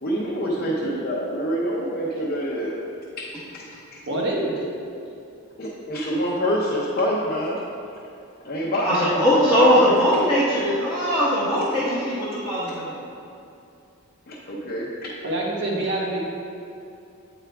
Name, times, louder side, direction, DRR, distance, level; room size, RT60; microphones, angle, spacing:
voice 1, 0.0-2.8 3.5-3.6 3.9-4.0 5.6-7.6 8.4-10.3 12.7-12.8 14.3-15.1, equal, 40° left, -6 dB, 0.6 m, -26 dB
voice 2, 4.1-4.6 15.2-16.2, right 2 dB, 55° right, -2 dB, 1.0 m, -25 dB
voice 3, 8.8-13.0, equal, 5° right, -11 dB, 0.9 m, -20 dB
8.0 x 4.8 x 3.4 m, 2.7 s
head